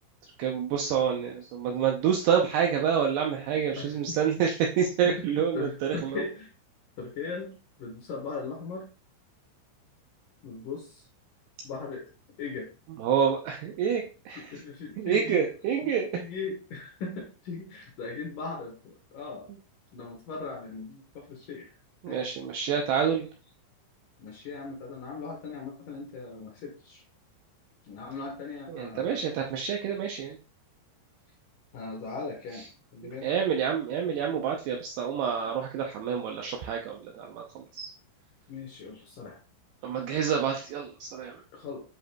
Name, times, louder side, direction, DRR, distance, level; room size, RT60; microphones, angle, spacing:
voice 1, 0.4-5.7 6.0-6.2 13.0-14.5 15.0-16.1 22.0-23.3 28.7-30.4 33.0-37.9 39.8-41.4, right 7 dB, 85° right, 1 dB, 2.3 m, -28 dB
voice 2, 3.7-4.2 5.0-6.5 7.0-8.9 10.4-11.1 11.6-12.1 12.4-12.7 14.4-15.5 16.1-19.5 19.9-21.7 22.1-22.3 24.2-27.0 27.8-29.3 31.7-32.7 32.9-33.3 38.5-39.4 41.5-41.8, left 4 dB, 70° left, 0 dB, 2.1 m, -39 dB
10.5 x 5.1 x 2.3 m, 0.34 s
omnidirectional pair, 5.7 m